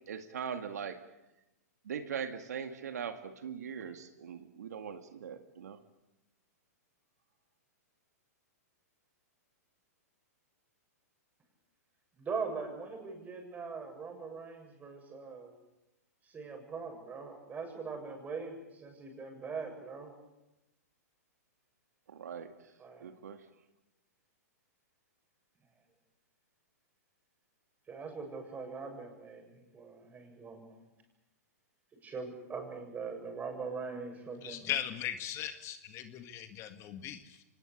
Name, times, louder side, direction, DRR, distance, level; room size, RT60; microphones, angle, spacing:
voice 1, 0.1-1.0 1.8-5.8 22.1-22.7 23.0-23.5, right 7 dB, 75° right, 7 dB, 2.1 m, -41 dB
voice 2, 12.2-15.5 16.3-20.1 22.8-23.1 27.9-30.8 32.0-34.7, right 5 dB, 20° right, 4 dB, 7.4 m, -41 dB
voice 3, 34.4-37.4, left 11 dB, 30° left, 8 dB, 1.9 m, -38 dB
25.0 x 20.5 x 8.6 m, 0.96 s
hypercardioid pair, 125°, 9 cm